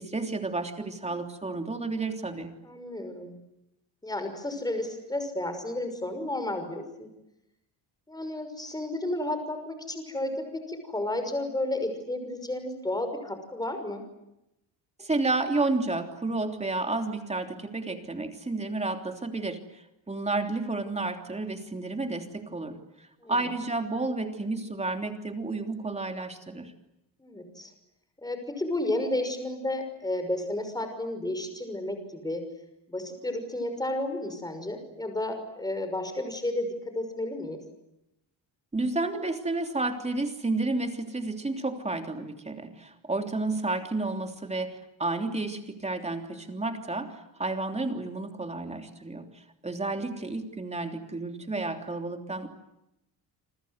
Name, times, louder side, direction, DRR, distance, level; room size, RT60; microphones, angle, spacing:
voice 1, 0.0-2.5 15.0-22.8 23.3-26.7 38.7-49.3 49.6-52.5, right 3 dB, 15° right, 5 dB, 3.2 m, -31 dB
voice 2, 2.6-3.3 4.0-7.1 8.1-10.3 10.7-14.0 23.2-23.5 27.2-27.7 28.2-32.4 32.9-36.7 36.9-37.6, left 1 dB, 10° left, 7 dB, 6.0 m, -32 dB
29.0 x 25.5 x 8.1 m, 0.87 s
cardioid pair, 165°, 44 cm